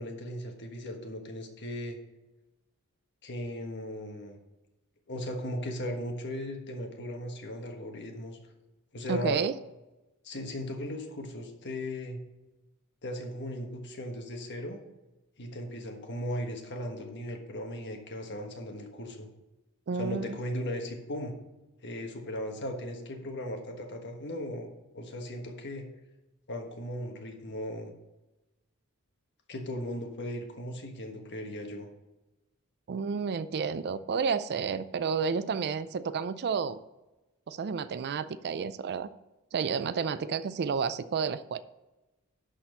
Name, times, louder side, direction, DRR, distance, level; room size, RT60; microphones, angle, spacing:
voice 1, 0.0-2.0 3.2-4.4 5.1-8.4 8.9-9.4 10.2-12.2 13.0-14.8 15.4-19.3 19.9-21.3 21.8-25.8 26.5-27.9 29.5-31.9, left 1 dB, 50° left, 3 dB, 1.4 m, -37 dB
voice 2, 9.1-9.5 19.9-20.4 32.9-36.8 37.5-39.1 39.5-41.6, right 6 dB, 50° right, 14 dB, 0.4 m, -31 dB
11.5 x 4.3 x 5.4 m, 1.0 s
head